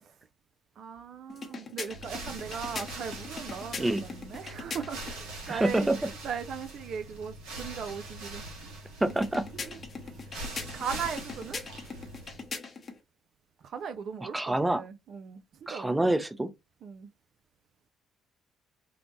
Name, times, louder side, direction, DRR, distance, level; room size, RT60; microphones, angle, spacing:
voice 1, 0.8-8.8 9.0-9.2 9.5-9.8 10.1-10.2 10.7-11.6 13.6-16.2 16.8-17.1, right 6 dB, 60° right, 0.3 m, -39 dB
sound 1, 1.3-5.2 9.1-13.0, left 4 dB, 45° left, 0.8 m, -41 dB
sound 2, 1.9-12.5, right 2 dB, 80° right, 0.9 m, -43 dB
voice 2, 5.5-6.0 9.0-9.4 14.2-14.8 15.7-16.5, right 1 dB, 15° right, 0.6 m, -27 dB
2.8 x 2.0 x 2.9 m
hypercardioid pair, 55°, 0 cm